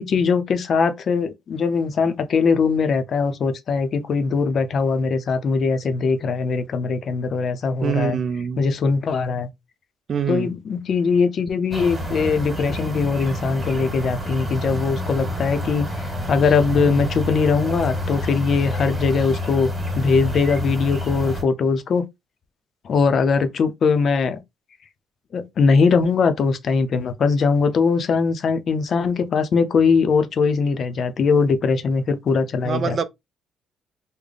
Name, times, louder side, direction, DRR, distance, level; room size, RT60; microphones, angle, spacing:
voice 1, 0.0-8.2 8.6-9.5 10.3-22.0 22.8-24.4 25.3-33.0, left 5 dB, 50° left, 0.6 m, -21 dB
voice 2, 7.8-8.7 10.1-10.5 32.6-33.0, right 7 dB, 45° right, 0.5 m, -24 dB
sound 1, 11.7-21.4, left 1 dB, 10° right, 1.5 m, -28 dB
3.4 x 2.1 x 3.8 m
cardioid pair, 105°, 0 cm